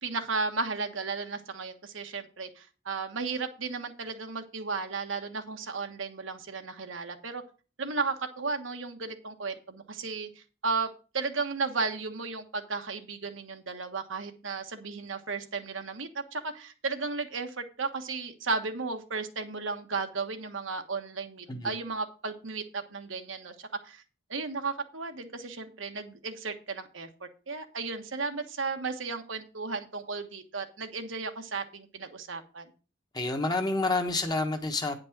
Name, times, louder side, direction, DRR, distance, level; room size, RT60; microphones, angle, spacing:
voice 1, 0.0-7.4 7.8-10.9 11.1-23.5 23.8-24.0 24.3-32.6, right 4 dB, 80° right, 1.3 m, -34 dB
voice 2, 33.1-35.0, left 2 dB, 20° left, 1.1 m, -28 dB
9.7 x 5.3 x 5.9 m
head